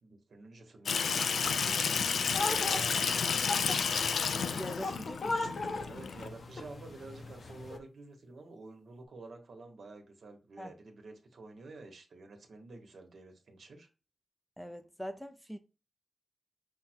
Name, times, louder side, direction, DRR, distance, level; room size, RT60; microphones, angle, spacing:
voice 1, 0.0-3.7 4.4-4.9 5.2-13.9, right 3 dB, 70° right, 1.3 m, -50 dB
Water tap faucet / Sink (filling or washing), 0.9-6.3, left 6 dB, 90° left, 0.4 m, -31 dB
sound 1, 2.3-7.8, left 2 dB, 60° left, 0.8 m, -38 dB
voice 2, 4.5-5.6 10.6-10.8 14.6-15.6, equal, ahead, 0.5 m, -43 dB
5.7 x 2.1 x 4.4 m
wide cardioid pair, 100°, 0 cm